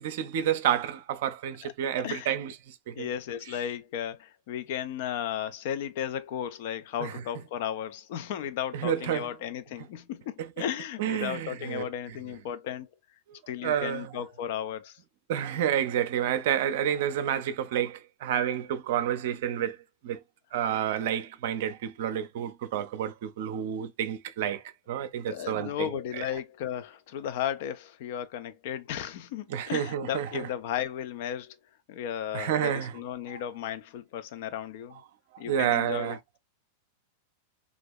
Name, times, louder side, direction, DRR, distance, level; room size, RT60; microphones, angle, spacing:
voice 1, 0.0-3.1 7.0-7.1 8.7-9.3 10.4-10.5 11.0-11.8 13.6-14.1 15.3-19.8 20.0-20.2 20.5-26.2 29.5-30.5 32.3-33.0 33.3-33.4 35.4-36.2, right 10 dB, 55° right, 0.4 m, -29 dB
voice 2, 2.0-2.3 2.9-12.9 13.5-15.0 25.3-31.6 31.9-35.0 35.4-36.4, left 9 dB, 50° left, 0.4 m, -35 dB
2.9 x 2.4 x 3.3 m
figure-of-eight pair, 90°, 0 cm